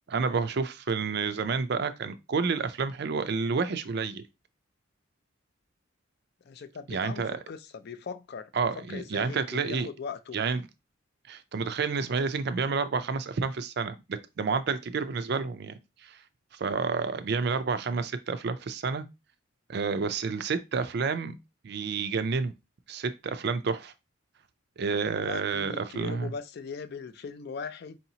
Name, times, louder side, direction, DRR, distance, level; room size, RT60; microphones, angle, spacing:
voice 1, 0.1-4.3 6.9-7.4 8.5-9.9 10.3-10.6 11.3-16.2 16.5-19.0 19.7-21.4 21.6-22.5 22.9-23.9 24.8-26.3, right 5 dB, 50° right, 0.4 m, -30 dB
voice 2, 6.4-8.5 8.9-10.4 25.2-28.0, left 5 dB, 50° left, 0.3 m, -39 dB
4.8 x 2.8 x 2.7 m
head